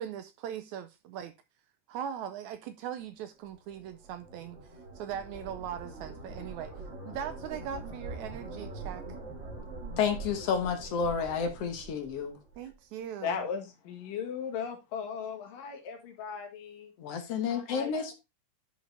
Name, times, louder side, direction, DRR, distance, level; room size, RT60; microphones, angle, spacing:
voice 1, 0.0-1.3 1.9-4.6 5.0-6.7 7.1-9.0 12.6-13.4, right 9 dB, 80° right, 1.8 m, -39 dB
sound 1, 3.5-12.7, right 3 dB, 35° right, 2.8 m, -44 dB
voice 2, 10.0-12.4 17.0-18.1, left 6 dB, 60° left, 1.8 m, -30 dB
voice 3, 13.2-16.9 17.7-18.1, left 7 dB, 90° left, 3.4 m, -37 dB
10.5 x 4.9 x 3.3 m
omnidirectional pair, 3.8 m